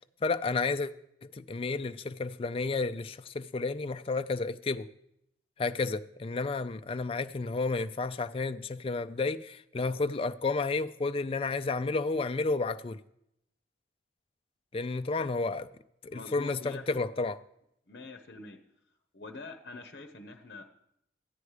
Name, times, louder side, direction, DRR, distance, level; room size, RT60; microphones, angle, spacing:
voice 1, 0.2-0.9 1.2-4.9 5.6-13.0 14.7-15.7 16.0-17.4, left 3 dB, 30° left, 0.4 m, -31 dB
voice 2, 16.1-16.8 17.9-18.6 19.1-20.7, left 3 dB, 55° left, 0.8 m, -45 dB
13.5 x 9.5 x 4.9 m
head